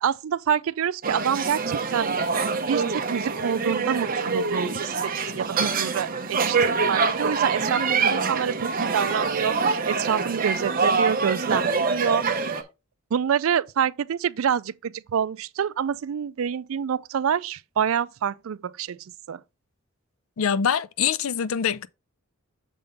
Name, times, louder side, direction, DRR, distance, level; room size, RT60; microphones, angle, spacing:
voice 1, 0.0-2.1 2.7-12.6 13.1-19.4, right 8 dB, 75° right, 0.4 m, -27 dB
sound 1, 1.0-12.6, right 4 dB, 40° right, 0.8 m, -25 dB
voice 2, 20.4-21.9, left 7 dB, 85° left, 0.5 m, -24 dB
6.8 x 3.7 x 5.1 m
head